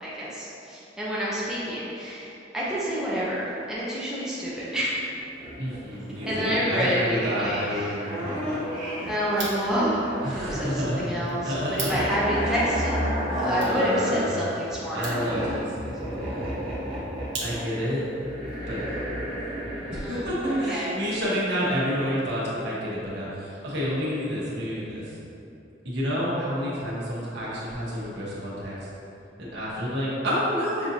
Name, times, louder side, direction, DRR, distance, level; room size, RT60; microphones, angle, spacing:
voice 1, 0.0-4.9 6.3-8.0 9.1-13.1 13.4-15.2 19.9-20.9, equal, 5° right, -8 dB, 0.6 m, -28 dB
sound 1, 5.3-5.8 6.2-6.8 8.0-10.8 11.1-14.3 14.7-20.7 21.1-21.2, equal, 30° right, 1.0 m, -31 dB
voice 2, 5.6-8.6 10.2-11.1 11.4-12.0 12.4-12.5 13.6-14.3 14.9-16.5 17.4-18.0 18.7-19.0 19.9-25.2 25.8-28.9 29.4-30.9, equal, 65° right, -7 dB, 1.1 m, -29 dB
sound 2, 9.2-18.0, right 3 dB, 85° right, 0.9 m, -42 dB
6.0 x 2.6 x 2.7 m, 2.8 s
head